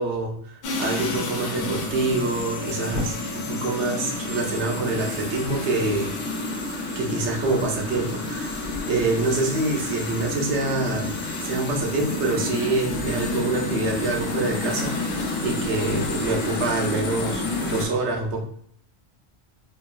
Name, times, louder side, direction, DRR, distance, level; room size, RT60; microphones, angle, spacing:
voice 1, 0.0-6.1 6.5-6.6 6.9-8.6 8.9-18.4, right 3 dB, 85° right, 0 dB, 0.9 m, -26 dB
sound 1, 0.6-17.9, left 2 dB, 85° left, 0.9 m, -29 dB
3.0 x 2.3 x 2.2 m, 0.62 s
omnidirectional pair, 1.1 m